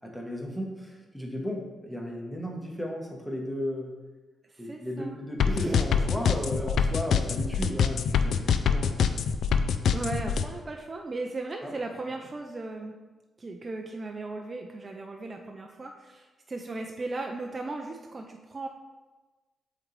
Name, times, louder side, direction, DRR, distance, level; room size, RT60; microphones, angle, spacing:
voice 1, 0.0-4.0 4.6-9.3 11.6-11.7, equal, ahead, 0 dB, 1.1 m, -35 dB
voice 2, 4.5-5.2 5.4-5.8 8.6-8.8 9.8-12.9 13.4-18.7, right 3 dB, 30° right, 2 dB, 0.4 m, -37 dB
sound 1, 5.4-10.4, left 7 dB, 70° left, 0.3 m, -24 dB
7.5 x 3.8 x 3.2 m, 1.2 s
cardioid pair, 90°, 0 cm